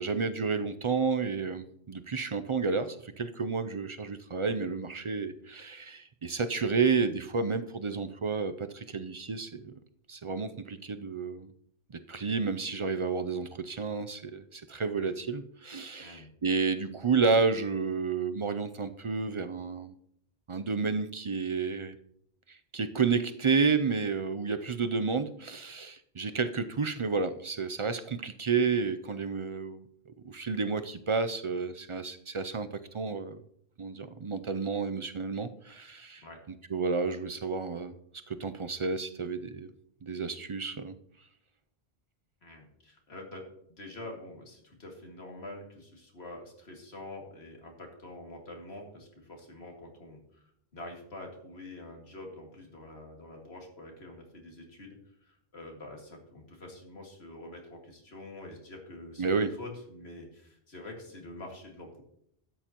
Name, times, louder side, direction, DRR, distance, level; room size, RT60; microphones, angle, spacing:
voice 1, 0.0-9.7 10.1-11.5 12.1-19.9 20.5-22.0 22.7-29.8 30.2-32.7 32.9-33.4 33.8-36.2 36.7-37.9 38.3-39.7 40.0-40.9 59.2-59.5, right 5 dB, 45° right, 10 dB, 0.4 m, -31 dB
voice 2, 16.0-16.3 36.2-36.4 42.4-62.0, left 2 dB, 75° left, 0 dB, 2.4 m, -46 dB
12.5 x 9.1 x 3.0 m, 0.71 s
omnidirectional pair, 1.1 m